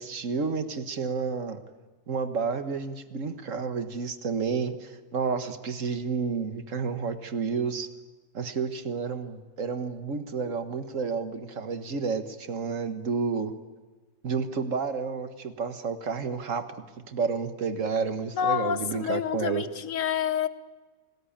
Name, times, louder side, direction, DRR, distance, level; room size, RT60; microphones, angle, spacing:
voice 1, 0.0-1.6 2.1-7.9 8.3-13.5 14.2-16.7 17.1-19.7, right 5 dB, 50° right, 9 dB, 1.7 m, -30 dB
voice 2, 18.3-20.5, left 8 dB, 55° left, 13 dB, 1.3 m, -28 dB
28.0 x 19.5 x 8.8 m, 1.3 s
omnidirectional pair, 1.8 m